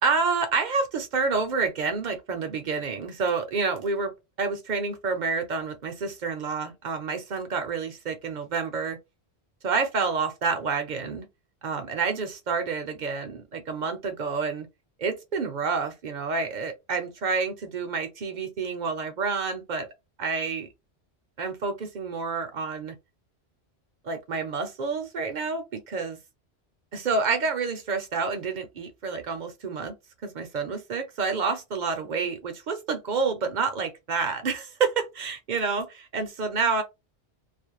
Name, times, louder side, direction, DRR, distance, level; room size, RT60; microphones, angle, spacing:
voice 1, 0.0-4.1 4.4-9.0 9.6-11.3 11.6-14.7 15.0-19.9 20.2-20.7 21.4-22.9 24.0-26.2 26.9-29.9 30.2-36.8, right 4 dB, 55° right, 0.6 m, -28 dB
2.4 x 2.0 x 2.9 m
omnidirectional pair, 1.1 m